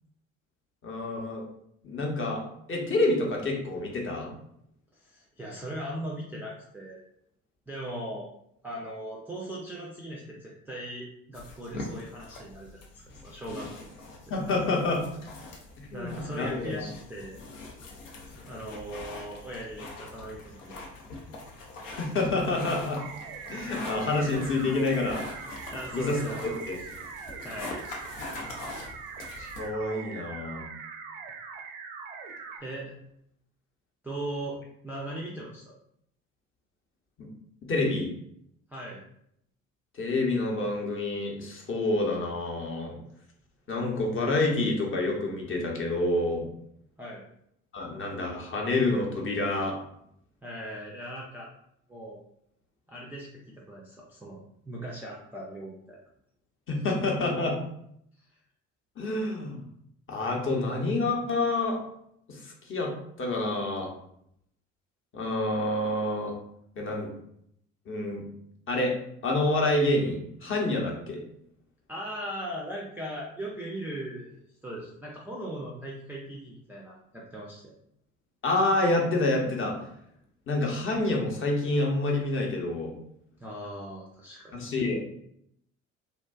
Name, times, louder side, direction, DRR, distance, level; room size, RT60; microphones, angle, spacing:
voice 1, 0.8-1.4 1.8-2.4 2.7-4.3 14.3-15.0 15.8-16.8 21.8-23.0 23.5-25.2 25.9-26.8 29.4-30.7 37.2-37.3 37.7-38.1 39.9-43.0 43.7-46.5 47.7-49.8 56.7-57.6 59.0-59.6 60.1-61.8 62.3-62.9 63.2-63.9 65.1-66.3 66.8-67.1 67.9-68.2 68.7-68.9 69.2-71.2 78.4-79.8 80.5-83.0 84.5-85.0, left 2 dB, 30° left, 0 dB, 0.7 m, -28 dB
voice 2, 5.0-7.0 7.7-8.3 8.6-12.8 13.2-13.7 15.4-15.6 15.9-17.4 18.2-20.7 25.7-26.6 27.4-27.8 32.6-33.0 34.0-34.6 34.8-35.7 38.7-39.0 47.0-47.2 50.4-51.5 51.9-52.2 52.9-56.0 71.9-77.7 83.4-84.5, right 1 dB, 5° right, -5 dB, 0.3 m, -39 dB
sound 1, 11.3-29.7, left 2 dB, 80° left, 0.6 m, -43 dB
sound 2, 23.0-32.6, right 5 dB, 65° right, 0.5 m, -42 dB
2.6 x 2.2 x 2.2 m, 0.73 s
figure-of-eight pair, 50°, 39 cm